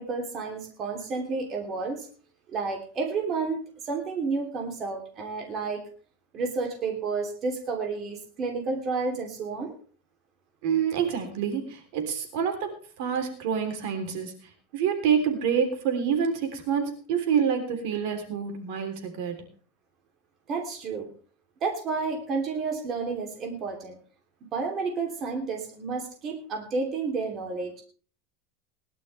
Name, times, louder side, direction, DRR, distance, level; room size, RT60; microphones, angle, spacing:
voice 1, 0.0-2.1 2.5-5.8 6.3-9.7 20.5-21.1 21.6-24.0 24.5-27.8, right 4 dB, 30° right, 2 dB, 3.1 m, -31 dB
voice 2, 10.6-19.5, right 7 dB, 65° right, 5 dB, 3.3 m, -27 dB
20.5 x 11.5 x 3.4 m, 0.40 s
supercardioid pair, 150°, 0 cm